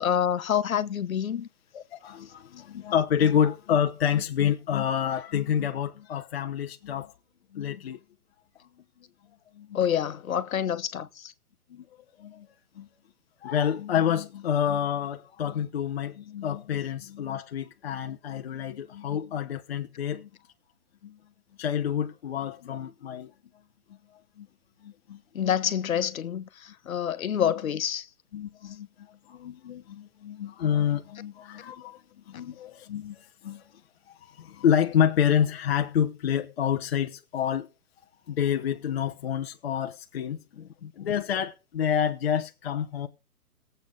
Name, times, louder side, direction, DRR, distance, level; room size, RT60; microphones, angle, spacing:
voice 1, 0.0-1.5 9.7-11.3 25.3-28.1 32.3-32.4 40.6-41.1, left 9 dB, 65° left, 1.3 m, -28 dB
voice 2, 1.7-7.1 7.5-8.0 8.6-8.7 9.5-9.8 11.7-11.9 12.2-12.9 13.4-20.3 21.0-21.2 21.6-23.3 24.4-24.5 24.8-25.5 28.3-33.8 34.1-37.7 38.3-40.6 41.0-43.1, left 9 dB, 45° left, 0.9 m, -28 dB
19.0 x 8.0 x 3.8 m
hypercardioid pair, 160°, 44 cm